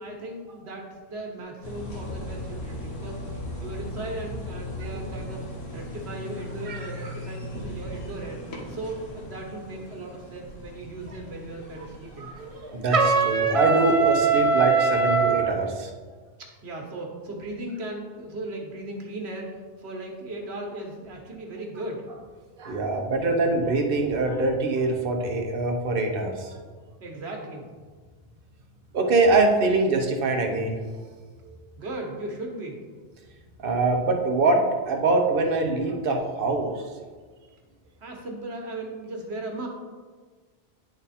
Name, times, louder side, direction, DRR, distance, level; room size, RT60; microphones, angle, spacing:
voice 1, 0.0-3.3 3.6-8.4 8.7-12.3 16.4-22.1 27.0-27.7 31.8-32.8 38.0-39.7, right 2 dB, 85° right, 1 dB, 1.5 m, -37 dB
sound 1, 1.6-15.6, left 1 dB, 85° left, 1.5 m, -39 dB
voice 2, 12.2-15.9 22.6-26.5 28.9-30.8 33.6-36.7, right 2 dB, 60° right, 2 dB, 1.1 m, -24 dB
Trumpet, 12.9-15.5, right 5 dB, 45° right, 0.5 m, -21 dB
10.0 x 3.6 x 4.2 m, 1.5 s
omnidirectional pair, 1.1 m